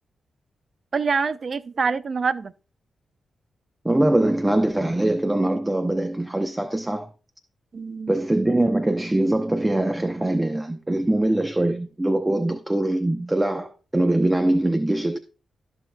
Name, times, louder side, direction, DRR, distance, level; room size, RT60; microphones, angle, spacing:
voice 1, 0.9-2.5 7.7-8.1, right 5 dB, 55° right, 0.6 m, -25 dB
voice 2, 3.8-7.1 8.1-15.2, right 1 dB, 20° right, 0.8 m, -22 dB
14.0 x 6.2 x 2.3 m
supercardioid pair, 45°, 0 cm